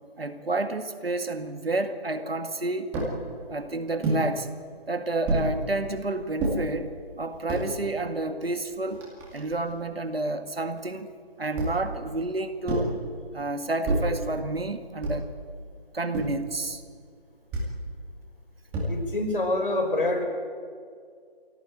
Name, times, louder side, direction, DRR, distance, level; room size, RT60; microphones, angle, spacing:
voice 1, 0.2-3.0 3.5-4.5 4.9-6.9 7.2-9.0 9.3-11.1 11.4-13.0 13.3-15.3 15.9-16.8, right 2 dB, 70° right, 8 dB, 2.2 m, -30 dB
sound 1, 2.9-3.2 4.0-4.3 5.3-5.5 6.4-6.6 7.3-7.7 8.4-8.5 8.7-9.7 11.6-11.9 12.7-13.0 13.8-14.2 15.0-15.4 16.1-16.5 17.5-17.8 18.7-19.2, right 1 dB, 5° right, 2.3 m, -28 dB
voice 2, 18.9-20.2, left 2 dB, 60° left, 1 dB, 5.9 m, -26 dB
23.5 x 17.0 x 9.2 m, 2.1 s
figure-of-eight pair, 160°, 31 cm